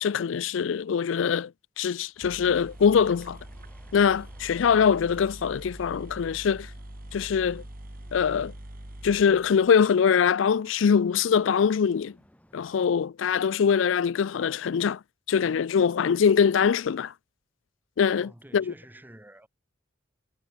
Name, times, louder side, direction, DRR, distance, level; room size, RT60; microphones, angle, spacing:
voice 1, 0.0-1.5 1.8-3.4 3.9-6.7 7.1-7.6 8.1-8.5 9.0-12.1 12.5-15.0 15.3-17.1 18.0-18.7, left 7 dB, 70° left, 0.4 m, -23 dB
sound 1, 1.9-2.0 2.2-10.0, right 1 dB, 45° right, 2.2 m, -44 dB
sound 2, 2.2-12.8, equal, 5° left, 5.2 m, -59 dB
voice 2, 18.2-19.5, right 1 dB, 10° right, 1.3 m, -49 dB
head